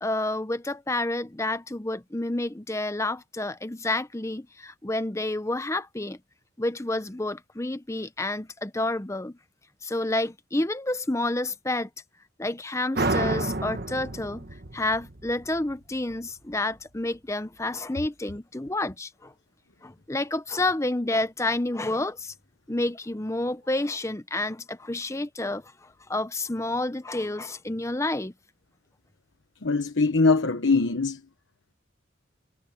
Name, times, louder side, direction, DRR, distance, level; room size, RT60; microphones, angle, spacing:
voice 1, 0.0-6.2 6.6-9.4 9.8-11.9 12.4-14.5 14.7-19.3 19.8-22.3 22.7-28.3, left 2 dB, 15° left, 0.7 m, -29 dB
sound 1, 12.9-16.2, right 2 dB, 50° right, 1.6 m, -30 dB
voice 2, 29.6-31.2, left 3 dB, 75° left, 1.1 m, -22 dB
head